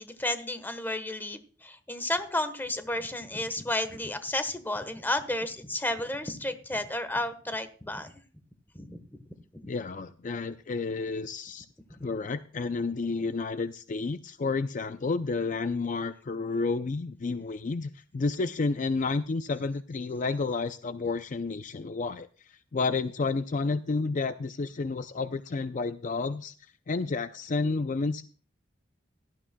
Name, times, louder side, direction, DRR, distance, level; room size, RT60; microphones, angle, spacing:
voice 1, 0.0-8.1 8.7-9.0 9.6-9.7, left 1 dB, 10° left, 11 dB, 1.2 m, -32 dB
voice 2, 9.7-11.7 12.0-26.5 26.9-28.2, left 3 dB, 45° left, 11 dB, 0.5 m, -31 dB
17.0 x 12.5 x 2.2 m, 0.42 s
head